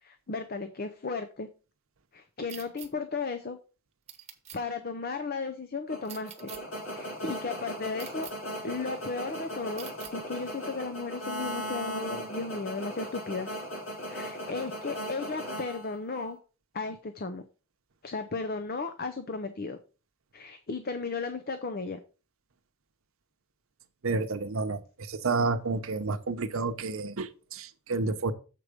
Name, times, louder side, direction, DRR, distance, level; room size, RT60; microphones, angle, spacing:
voice 1, 0.0-1.5 2.1-3.6 4.5-6.5 6.9-8.3 8.6-13.5 14.1-16.4 16.7-17.4 18.0-19.8 20.3-22.0, left 4 dB, 45° left, 0.6 m, -35 dB
sound 1, 2.5-2.9 4.1-4.6 6.0-6.6 8.0-8.3 9.8-10.1, right 10 dB, 30° right, 1.0 m, -44 dB
sound 2, 5.9-16.3, equal, 70° left, 2.6 m, -38 dB
voice 2, 24.0-24.8 25.1-28.3, right 3 dB, 80° right, 0.8 m, -30 dB
7.5 x 4.7 x 5.1 m
head